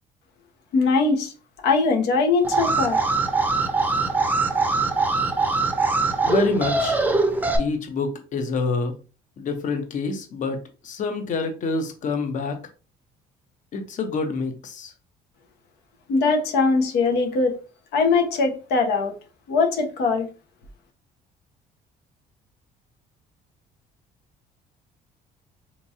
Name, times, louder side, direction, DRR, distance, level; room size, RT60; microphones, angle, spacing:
voice 1, 0.7-1.3 1.6-3.0 16.1-17.6 17.9-19.1 19.5-20.3, left 4 dB, 80° left, 0.8 m, -21 dB
Alarm, 2.4-7.6, right 3 dB, 10° right, 0.5 m, -22 dB
voice 2, 6.2-7.0 7.6-8.9 9.4-12.6 13.7-14.9, left 4 dB, 50° left, 0.7 m, -27 dB
3.6 x 3.0 x 2.7 m
cardioid pair, 110°, 17 cm